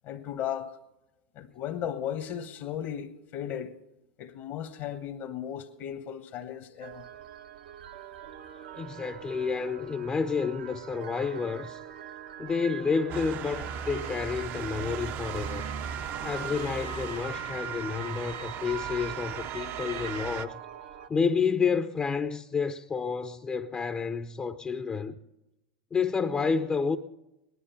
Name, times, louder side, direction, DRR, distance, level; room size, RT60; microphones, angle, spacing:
voice 1, 0.0-0.8 1.3-3.7 4.2-7.0, left 9 dB, 55° left, 1.1 m, -36 dB
sound 1, 6.8-21.1, right 9 dB, 80° right, 1.0 m, -44 dB
voice 2, 8.8-11.8 12.4-15.7 16.2-20.6 21.1-25.2 25.9-27.0, left 5 dB, 20° left, 0.6 m, -30 dB
Motor vehicle (road) / Siren, 13.1-20.5, right 7 dB, 45° right, 0.6 m, -37 dB
18.5 x 11.0 x 5.7 m
hypercardioid pair, 110°, 5 cm